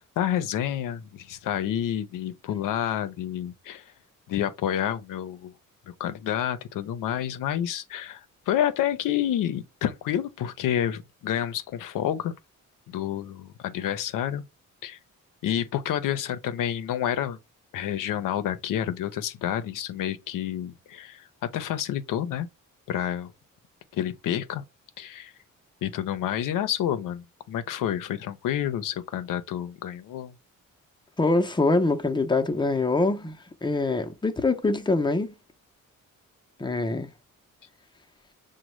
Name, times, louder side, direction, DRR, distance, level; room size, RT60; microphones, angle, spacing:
voice 1, 0.2-3.8 4.3-5.5 5.9-12.3 12.9-14.4 14.8-15.0 15.4-17.4 17.7-22.5 22.9-23.3 23.9-24.6 25.0-25.3 25.8-30.3, left 10 dB, 85° left, 0.6 m, -29 dB
voice 2, 31.2-33.4 33.6-35.3 36.6-37.1, left 2 dB, 15° left, 0.5 m, -24 dB
6.0 x 2.1 x 3.0 m
cardioid pair, 95°, 32 cm